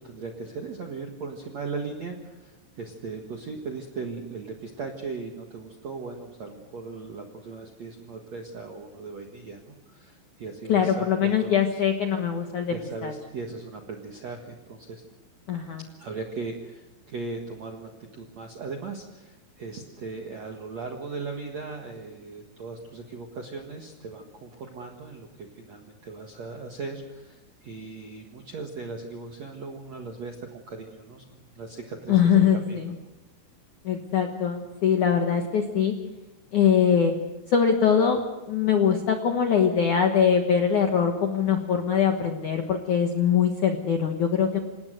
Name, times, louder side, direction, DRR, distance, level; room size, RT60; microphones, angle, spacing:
voice 1, 0.0-11.8 12.7-15.0 16.0-32.8, right 4 dB, 65° right, 2 dB, 1.7 m, -38 dB
voice 2, 10.7-12.8 13.0-13.1 15.5-15.8 32.1-32.9 33.8-35.9 36.5-37.1 37.5-38.2 38.5-44.6, left 7 dB, 70° left, 4 dB, 1.8 m, -22 dB
27.5 x 18.0 x 6.6 m, 1.0 s
omnidirectional pair, 5.7 m